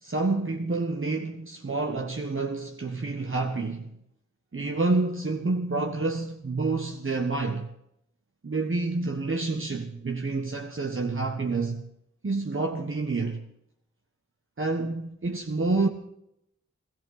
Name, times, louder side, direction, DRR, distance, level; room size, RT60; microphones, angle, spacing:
voice 1, 0.0-3.9 4.5-7.7 8.4-11.8 12.2-13.4 14.6-15.9, right 3 dB, 45° right, 1.3 m, -28 dB
20.0 x 13.5 x 4.1 m
cardioid pair, 45°, 29 cm